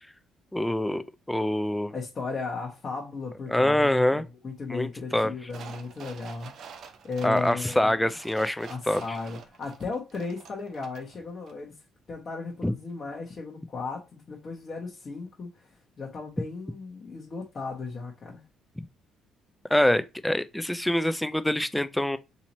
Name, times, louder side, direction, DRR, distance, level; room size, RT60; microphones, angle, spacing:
voice 1, 0.5-1.9 3.5-4.2 4.7-5.3 7.2-9.0 12.6-12.7 19.7-22.2, left 1 dB, 5° left, 0.3 m, -25 dB
voice 2, 1.9-8.0 8.7-11.8 12.1-18.4, left 4 dB, 35° left, 1.0 m, -36 dB
sound 1, 5.5-11.2 11.5-11.6, right 6 dB, 60° right, 0.6 m, -47 dB
3.0 x 2.7 x 4.0 m
cardioid pair, 110°, 0 cm